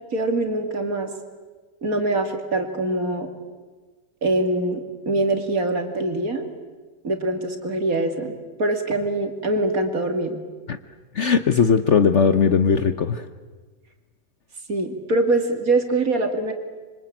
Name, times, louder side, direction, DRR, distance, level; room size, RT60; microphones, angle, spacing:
voice 1, 0.1-1.1 1.8-3.3 4.2-6.5 7.0-10.4 14.7-16.5, right 2 dB, 55° right, 5 dB, 2.9 m, -23 dB
voice 2, 11.1-13.3, left 6 dB, 50° left, 10 dB, 1.1 m, -18 dB
26.5 x 25.0 x 8.9 m, 1.4 s
omnidirectional pair, 1.8 m